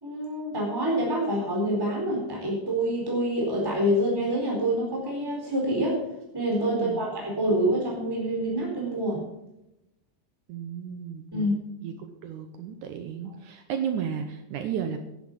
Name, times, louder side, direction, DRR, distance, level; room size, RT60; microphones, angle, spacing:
voice 1, 0.0-6.0 6.3-9.2 11.3-11.6, right 1 dB, 5° right, -2 dB, 3.9 m, -26 dB
voice 2, 6.7-7.0 10.5-11.3 11.8-11.9 12.2-15.0, right 8 dB, 90° right, 7 dB, 1.7 m, -33 dB
11.0 x 10.0 x 7.3 m, 0.86 s
omnidirectional pair, 4.9 m